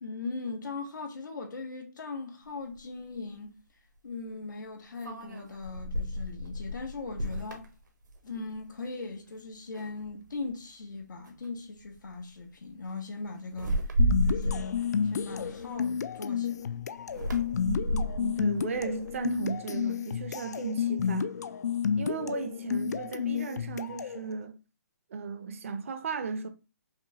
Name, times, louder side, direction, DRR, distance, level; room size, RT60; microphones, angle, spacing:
voice 1, 0.0-3.5 4.0-7.7 8.2-13.9 14.2-16.8, left 3 dB, 85° left, 1.2 m, -39 dB
sound 1, 2.7-2.8 5.0-8.6 9.0-9.3 9.7-10.4 11.3-11.5 11.8-12.1 13.5-16.1 17.0-19.5, equal, 90° right, 1.2 m, -32 dB
sound 2, 14.0-24.2, left 7 dB, 65° left, 0.3 m, -31 dB
voice 2, 17.7-21.3 22.0-24.6 25.1-26.5, right 5 dB, 45° right, 0.6 m, -35 dB
5.7 x 2.2 x 2.7 m
hypercardioid pair, 165°, 10 cm